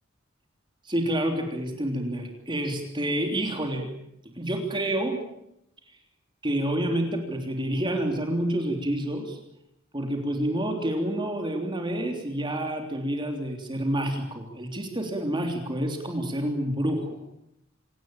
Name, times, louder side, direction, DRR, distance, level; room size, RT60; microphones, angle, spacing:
voice 1, 0.8-3.9 4.2-5.2 6.4-9.4 9.9-17.2, right 1 dB, 25° right, 4 dB, 3.3 m, -28 dB
26.0 x 18.0 x 8.9 m, 0.79 s
head